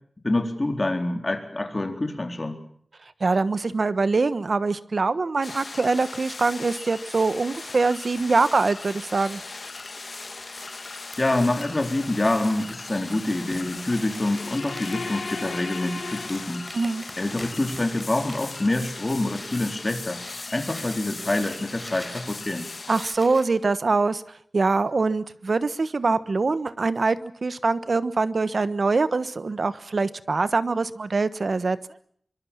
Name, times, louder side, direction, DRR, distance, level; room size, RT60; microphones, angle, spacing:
voice 1, 0.2-2.6 11.2-16.6 17.2-20.2 20.5-22.7, left 2 dB, 30° left, 5 dB, 4.1 m, -26 dB
voice 2, 3.2-9.4 16.7-17.0 22.9-24.2 24.5-31.8, right 3 dB, 60° right, 14 dB, 1.2 m, -23 dB
sound 1, 5.4-23.2, left 3 dB, 55° left, 2.1 m, -39 dB
Crumpling crinkling, 8.2-19.7 20.1-23.5, equal, 5° left, 4.9 m, -46 dB
sound 2, 14.1-17.1, left 4 dB, 75° left, 5.6 m, -36 dB
24.5 x 23.5 x 7.3 m, 0.63 s
wide cardioid pair, 85°, 0 cm